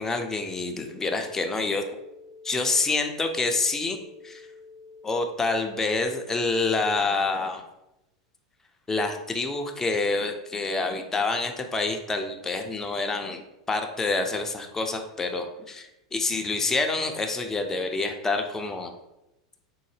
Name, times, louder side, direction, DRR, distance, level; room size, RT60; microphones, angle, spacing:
voice 1, 0.0-1.8 2.4-4.0 4.2-4.5 5.0-7.6 8.9-19.0, left 3 dB, 15° left, 5 dB, 0.5 m, -27 dB
sound 1, 1.1-6.1, left 4 dB, 70° left, 0.5 m, -48 dB
3.9 x 2.0 x 3.2 m, 0.92 s
hypercardioid pair, 90°, 3 cm